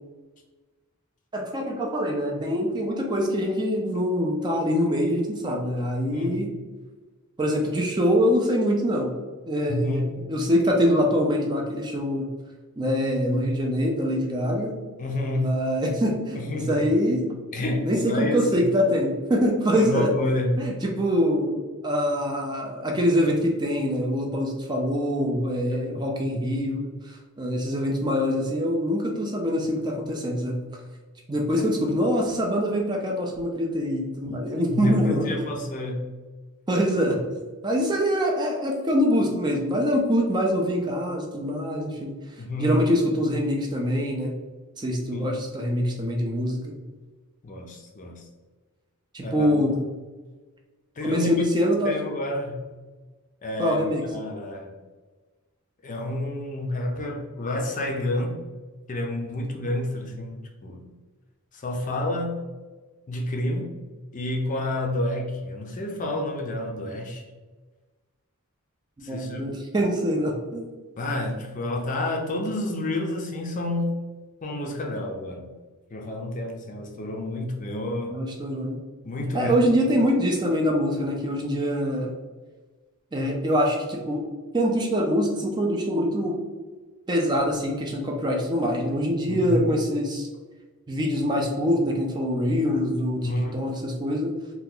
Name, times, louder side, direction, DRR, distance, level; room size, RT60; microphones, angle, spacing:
voice 1, 1.3-6.5 7.4-9.2 9.5-12.3 12.8-14.7 15.4-17.2 17.8-20.1 20.6-30.6 31.3-35.3 36.7-37.2 37.6-42.1 42.6-44.3 44.8-46.6 49.1-49.8 51.0-52.0 53.6-54.0 69.1-70.7 78.1-78.8 79.3-82.1 83.1-84.2 84.5-86.4 87.1-90.3 90.9-94.3, equal, 20° right, 0 dB, 0.4 m, -24 dB
voice 2, 6.1-6.5 9.7-10.1 15.0-15.6 16.4-17.2 17.5-18.7 19.8-20.6 34.2-34.3 34.7-36.1 42.4-42.8 45.1-45.3 47.4-48.2 49.2-49.8 51.0-51.4 51.8-52.7 53.4-54.7 55.8-58.4 58.9-60.9 61.5-62.4 63.1-63.7 64.1-67.2 69.0-69.5 71.0-74.0 74.4-75.5 75.9-78.2 79.0-79.8 89.3-89.7 93.2-93.7, left 1 dB, 35° left, 1 dB, 0.5 m, -29 dB
2.9 x 2.3 x 3.7 m, 1.3 s
head